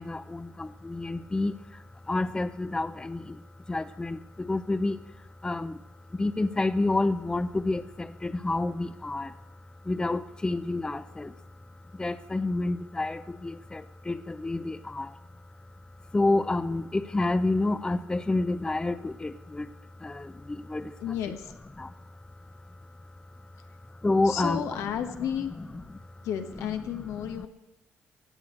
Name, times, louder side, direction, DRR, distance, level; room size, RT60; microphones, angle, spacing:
voice 1, 0.0-5.0 5.4-5.8 6.1-9.4 9.8-11.3 11.9-15.2 16.1-19.7 20.0-21.0 21.8-21.9 24.0-24.6, left 2 dB, 15° left, 14 dB, 0.6 m, -29 dB
voice 2, 21.0-21.5 24.2-25.5 26.2-27.5, left 9 dB, 85° left, 7 dB, 1.3 m, -32 dB
16.0 x 8.3 x 7.5 m, 1.1 s
cardioid pair, 85°, 5 cm